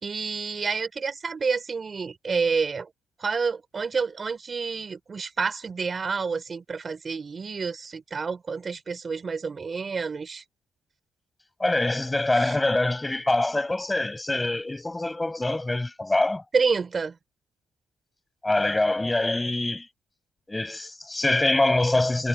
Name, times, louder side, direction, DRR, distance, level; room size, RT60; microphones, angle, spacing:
voice 1, 0.0-2.9 3.2-10.4 12.4-12.6 16.5-17.2, right 5 dB, 35° right, 4.9 m, -29 dB
voice 2, 11.6-16.4 18.4-19.9 20.5-22.3, left 2 dB, 15° left, 5.0 m, -24 dB
cardioid pair, 90°, 0 cm